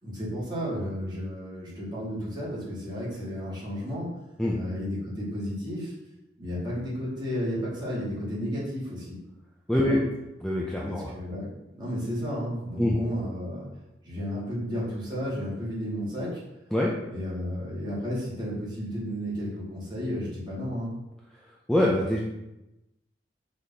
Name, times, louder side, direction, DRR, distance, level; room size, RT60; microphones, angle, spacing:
voice 1, 0.0-4.2 4.5-5.9 6.4-9.2 9.8-10.0 10.9-13.6 14.0-16.4 17.1-20.9, equal, 25° right, -7 dB, 2.5 m, -33 dB
voice 2, 9.7-10.0 10.4-11.1 12.8-13.0 16.7-16.9 21.7-22.2, left 1 dB, 5° left, -4 dB, 0.6 m, -24 dB
5.1 x 4.2 x 5.6 m, 0.93 s
head